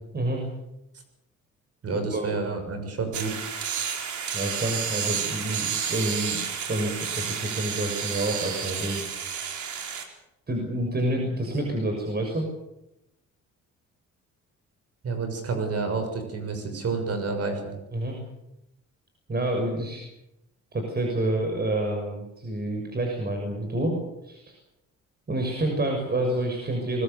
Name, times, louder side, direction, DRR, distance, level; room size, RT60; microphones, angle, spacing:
voice 1, 1.8-3.4 15.0-17.7, right 4 dB, 55° right, 6 dB, 6.6 m, -29 dB
sound 1, 3.1-10.0, right 7 dB, 70° right, 4.2 m, -31 dB
voice 2, 4.3-6.4 6.7-9.0 10.5-12.4 17.9-18.2 19.3-20.0 20.7-24.5 25.3-27.0, right 1 dB, 30° right, 2 dB, 6.3 m, -28 dB
24.5 x 21.0 x 6.9 m, 0.89 s
cardioid pair, 90°, 30 cm